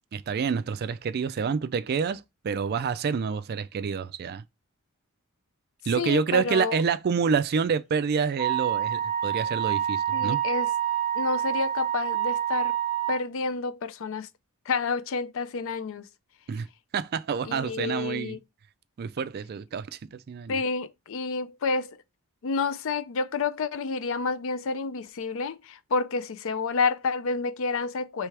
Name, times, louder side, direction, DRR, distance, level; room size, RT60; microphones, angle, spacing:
voice 1, 0.1-4.4 5.8-10.4 16.5-16.7 16.9-18.4 19.0-20.6, right 6 dB, 45° right, 0.3 m, -28 dB
voice 2, 6.0-6.8 10.1-10.7 11.1-12.8 13.1-14.3 14.7-16.1 17.4-18.4 20.5-22.0 22.4-28.3, left 4 dB, 65° left, 0.5 m, -29 dB
Wind instrument woodwind instrument, 8.4-13.2, right 11 dB, 85° left, 1.5 m, -27 dB
3.3 x 3.3 x 4.6 m
head